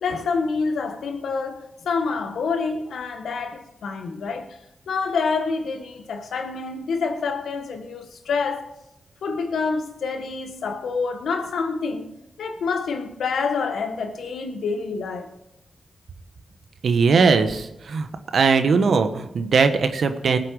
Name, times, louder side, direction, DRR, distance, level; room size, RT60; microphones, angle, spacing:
voice 1, 0.0-4.5 4.9-8.7 9.2-12.1 12.4-15.3, left 4 dB, 85° left, 1.4 m, -27 dB
voice 2, 16.8-18.1 18.3-20.4, right 5 dB, 75° right, 1.2 m, -19 dB
19.5 x 7.6 x 4.8 m
supercardioid pair, 45°, 0 cm